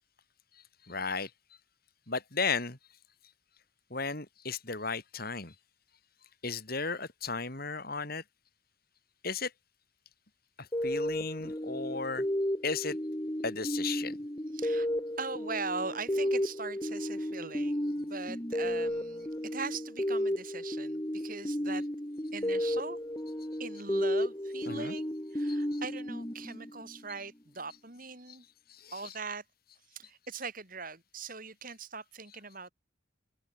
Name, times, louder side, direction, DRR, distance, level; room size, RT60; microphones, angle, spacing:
voice 1, 0.9-1.3 2.1-2.8 3.9-5.5 6.4-8.2 9.2-9.5 10.8-12.2 12.6-13.0 13.4-14.1 24.7-24.9 25.7-25.8 28.8-28.9, left 4 dB, 50° left, 3.4 m, -34 dB
sound 1, 10.7-27.1, equal, 20° left, 2.1 m, -33 dB
voice 2, 14.5-14.9 15.2-21.8 22.3-23.0 23.6-28.4 28.9-29.4 29.9-32.7, right 4 dB, 45° right, 7.6 m, -41 dB
head